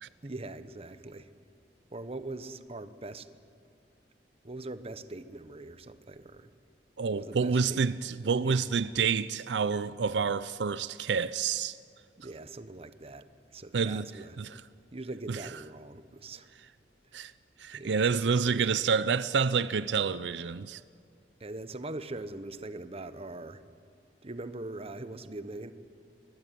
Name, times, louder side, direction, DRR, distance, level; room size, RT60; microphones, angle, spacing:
voice 1, 0.2-1.3 1.9-3.3 4.4-6.5 7.1-8.6 12.2-14.4 14.9-16.5 17.7-18.0 18.3-18.9 21.4-23.6 24.2-25.7, right 2 dB, 35° right, 1.1 m, -42 dB
voice 2, 7.0-11.8 13.7-14.1 14.4-14.5 15.3-15.4 17.1-17.3 17.6-20.8, right 5 dB, 80° right, 0.5 m, -28 dB
23.5 x 21.0 x 9.3 m
head